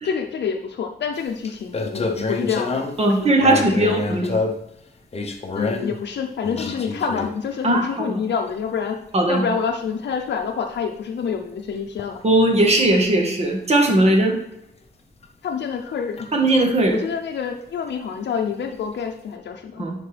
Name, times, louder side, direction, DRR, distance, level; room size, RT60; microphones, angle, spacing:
voice 1, 0.0-4.3 5.5-9.0 9.3-12.2 15.4-16.3 16.9-19.9, left 6 dB, 90° left, 3 dB, 0.6 m, -27 dB
sound 1, 1.2-1.3 1.4-3.1 3.4-4.7 5.1-6.0 6.4-7.6 8.3-8.5 10.2-10.4 12.1-12.2 12.6-12.8 15.2-15.3 15.7-15.8 16.2-16.6 19.0-19.1, left 3 dB, 35° left, 0.7 m, -27 dB
voice 2, 3.0-4.3 7.6-8.2 9.1-9.4 12.2-14.4 16.3-17.0 19.8-20.1, right 1 dB, 40° right, 2 dB, 1.3 m, -18 dB
10.5 x 4.4 x 3.3 m, 0.82 s
wide cardioid pair, 165°, 18 cm